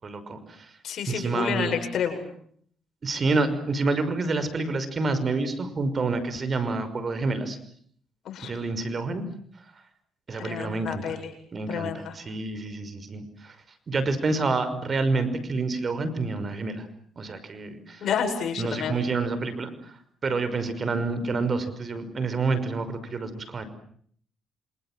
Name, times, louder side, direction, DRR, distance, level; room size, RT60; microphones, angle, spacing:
voice 1, 0.0-0.7 1.1-1.7 3.0-7.6 8.4-9.3 10.3-11.1 11.5-13.6 13.9-16.9 17.2-18.0 18.6-23.6, right 3 dB, 40° right, 12 dB, 5.7 m, -28 dB
voice 2, 0.8-2.2 8.2-8.5 10.4-11.3 11.7-12.1 18.0-19.0, left 7 dB, 70° left, 6 dB, 7.9 m, -29 dB
28.5 x 27.5 x 7.6 m, 0.62 s
cardioid pair, 90°, 0 cm